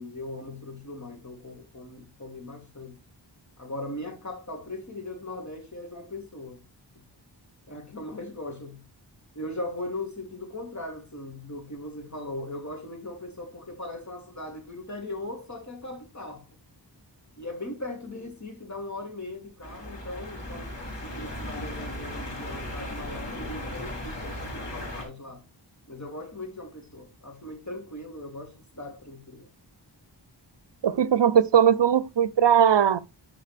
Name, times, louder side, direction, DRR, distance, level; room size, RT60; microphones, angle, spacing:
voice 1, 0.0-3.0 3.6-6.6 6.9-7.1 7.7-8.9 9.3-16.5 17.4-20.7 21.0-25.4 25.9-29.5, left 1 dB, 40° left, 2.9 m, -39 dB
sound 1, 19.6-25.0, left 1 dB, 80° left, 3.8 m, -36 dB
voice 2, 30.8-33.0, right 8 dB, 70° right, 0.6 m, -19 dB
11.5 x 4.8 x 3.4 m
wide cardioid pair, 75°, 44 cm